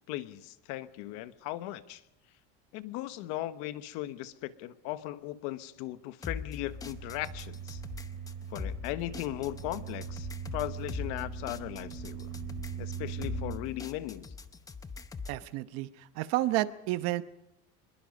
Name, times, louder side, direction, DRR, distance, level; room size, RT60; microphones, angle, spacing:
voice 1, 0.1-2.0 2.7-7.8 8.5-12.3 12.8-14.3, left 15 dB, 65° left, 1.2 m, -38 dB
sound 1, 6.2-15.4, left 5 dB, 10° left, 0.8 m, -42 dB
sound 2, 6.6-13.6, right 8 dB, 35° right, 5.0 m, -41 dB
voice 2, 15.3-17.2, right 16 dB, 55° right, 1.0 m, -31 dB
25.0 x 22.0 x 5.4 m
cardioid pair, 165°, 29 cm